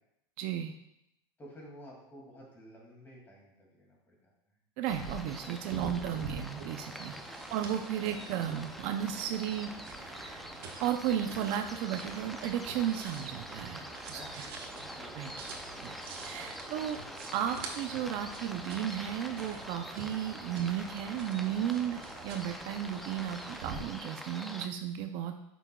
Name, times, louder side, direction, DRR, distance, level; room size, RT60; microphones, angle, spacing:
voice 1, 0.4-0.7 4.8-7.2 7.5-9.7 10.0-10.4 10.8-14.2 15.1-15.3 15.8-16.0 16.2-17.0 17.3-25.3, right 10 dB, 55° right, 7 dB, 0.5 m, -34 dB
voice 2, 1.4-4.6 7.2-7.4 14.1-15.4, equal, 15° left, -2 dB, 2.3 m, -53 dB
sound 1, 4.8-24.7, equal, ahead, 0.4 m, -45 dB
sound 2, 4.9-23.8, right 4 dB, 85° right, 1.2 m, -46 dB
9.0 x 6.1 x 2.3 m, 0.82 s
supercardioid pair, 135°, 12 cm